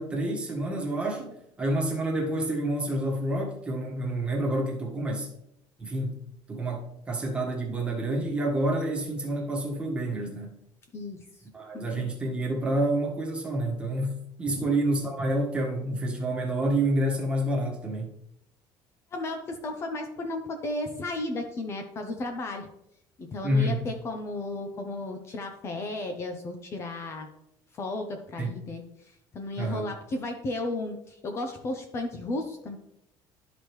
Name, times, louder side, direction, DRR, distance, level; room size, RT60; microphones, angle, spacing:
voice 1, 0.0-1.3 1.6-5.3 5.8-6.1 6.5-10.6 11.5-18.1 23.4-23.8 28.4-28.5 29.6-29.8, right 1 dB, 10° right, -1 dB, 1.5 m, -28 dB
voice 2, 10.9-11.2 11.7-11.8 14.4-14.7 19.1-22.7 23.2-27.3 27.7-32.8, left 2 dB, 30° left, 4 dB, 0.7 m, -34 dB
12.0 x 5.0 x 3.1 m, 0.80 s
cardioid pair, 165°, 9 cm